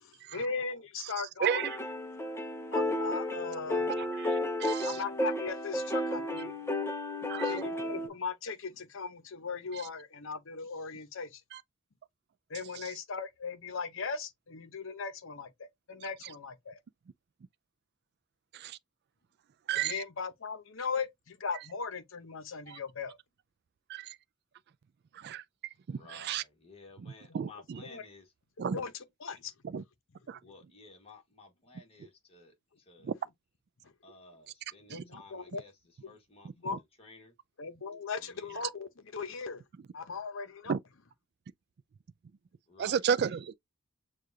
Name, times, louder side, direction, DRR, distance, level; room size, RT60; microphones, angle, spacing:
voice 1, 0.0-1.6 2.7-3.9 4.8-6.5 7.4-11.4 12.5-16.8 19.7-23.2 27.3-27.4 27.8-28.1 28.7-29.5 30.3-30.4 33.8-33.9 34.9-35.6 36.0-36.2 36.6-36.8 37.6-39.6 39.9-40.7, left 5 dB, 65° left, 0.8 m, -38 dB
sound 1, 1.5-8.1, left 1 dB, 10° left, 0.7 m, -33 dB
voice 2, 4.0-4.9 7.3-7.7 18.5-18.8 19.7-20.0 22.7-22.8 23.9-24.2 25.1-25.4 25.9-26.4 27.0-27.8 28.6-28.8 29.7-29.8 30.3-30.4 33.0-33.1 34.9-35.2 40.7-40.8 42.8-43.5, right 7 dB, 50° right, 0.3 m, -33 dB
voice 3, 26.0-28.2 30.4-32.5 32.9-33.1 34.0-35.7 36.1-36.5 37.1-37.3 42.7-43.0, left 3 dB, 30° left, 1.5 m, -54 dB
6.5 x 2.4 x 2.7 m
head